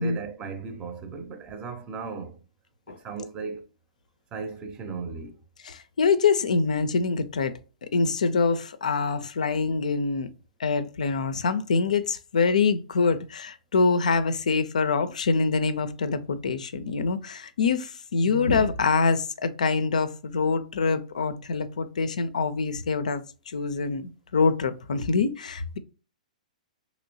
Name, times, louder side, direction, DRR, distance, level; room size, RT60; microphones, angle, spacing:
voice 1, 0.0-2.4 2.9-3.6 4.3-5.4, right 4 dB, 25° right, 0.6 m, -36 dB
voice 2, 5.6-7.5 7.8-10.3 10.6-25.8, left 4 dB, 65° left, 0.4 m, -25 dB
3.0 x 3.0 x 2.6 m
figure-of-eight pair, 110°, 4 cm